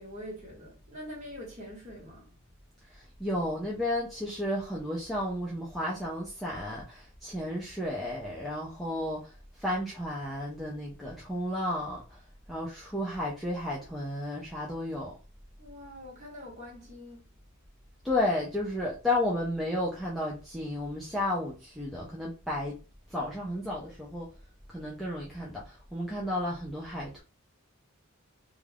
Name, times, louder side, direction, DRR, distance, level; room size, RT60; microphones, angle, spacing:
voice 1, 0.0-2.4 15.6-17.2, equal, 30° right, 1.1 m, -44 dB
voice 2, 2.9-12.2 12.5-15.1 18.0-22.8 23.1-24.3 24.7-27.2, left 1 dB, ahead, 0.4 m, -33 dB
2.4 x 2.3 x 3.3 m
head